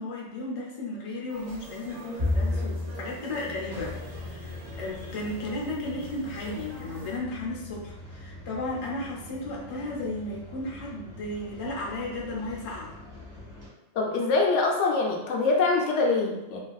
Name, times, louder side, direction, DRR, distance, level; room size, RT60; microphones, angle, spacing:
voice 1, 0.0-12.9, left 2 dB, 40° left, -3 dB, 0.5 m, -34 dB
sound 1, 1.3-7.2, right 1 dB, 70° right, 1.2 m, -45 dB
Bowed string instrument, 2.2-8.5, left 2 dB, 40° right, 0.4 m, -35 dB
sound 2, 3.7-13.7, left 2 dB, 20° right, 1.1 m, -45 dB
voice 2, 13.9-16.6, left 3 dB, 75° left, 0 dB, 0.9 m, -24 dB
3.2 x 2.5 x 2.3 m, 0.93 s
omnidirectional pair, 1.3 m